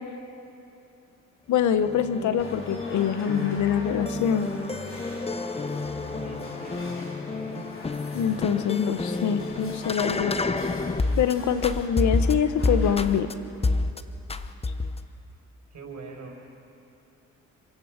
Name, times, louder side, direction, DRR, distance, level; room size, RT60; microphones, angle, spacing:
voice 1, 1.5-4.5 8.1-10.4 11.2-13.3, left 8 dB, 75° left, 11 dB, 1.1 m, -24 dB
sound 1, 1.6-11.3 11.6-13.3 13.6-14.0 14.3-15.1, left 3 dB, 20° left, 0.8 m, -29 dB
sound 2, 2.4-13.0, left 1 dB, 45° left, 4.4 m, -43 dB
voice 2, 6.1-7.6 15.7-16.4, right 3 dB, 65° right, 0 dB, 5.5 m, -42 dB
27.0 x 16.5 x 6.6 m, 2.8 s
cardioid pair, 90°, 30 cm